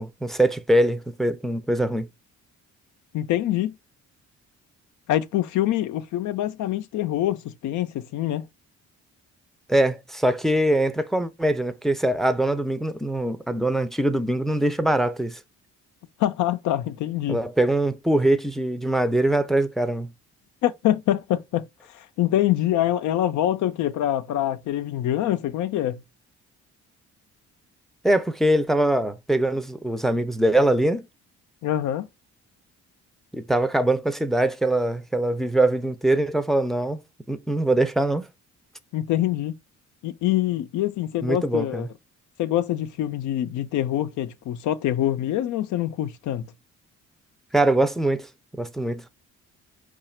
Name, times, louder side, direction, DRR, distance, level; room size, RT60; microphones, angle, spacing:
voice 1, 0.0-2.1 9.7-15.4 17.3-20.1 28.0-31.0 33.3-37.0 37.3-38.3 41.2-41.9 47.5-48.3 48.6-49.0, right 1 dB, ahead, 0.5 m, -22 dB
voice 2, 3.1-3.7 5.1-8.4 16.2-17.4 20.6-21.6 21.9-26.0 31.6-32.1 38.9-39.5 40.0-41.9 42.4-46.4, left 13 dB, 75° left, 0.5 m, -25 dB
4.8 x 2.4 x 4.3 m
cardioid pair, 90°, 30 cm